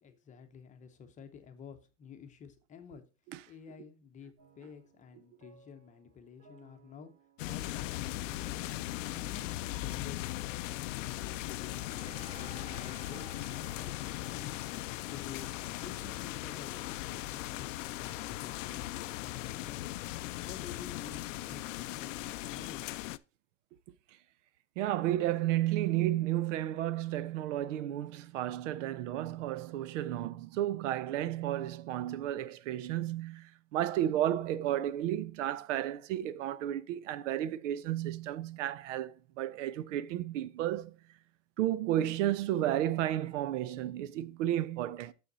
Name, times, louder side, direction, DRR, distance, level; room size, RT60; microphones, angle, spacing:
voice 1, 0.0-3.0 3.5-7.1 7.5-8.6 9.1-14.5 14.9-19.9 20.4-22.8, left 6 dB, 20° left, 0.8 m, -51 dB
sound 1, 4.4-10.3, right 5 dB, 40° right, 1.6 m, -62 dB
sound 2, 7.4-23.2, left 17 dB, 80° left, 0.5 m, -38 dB
Dishes pots and pans, 11.7-20.5, right 3 dB, 15° right, 2.0 m, -57 dB
voice 2, 24.8-40.9 41.6-45.1, right 12 dB, 75° right, 0.6 m, -32 dB
6.9 x 6.5 x 3.8 m
supercardioid pair, 140°, 38 cm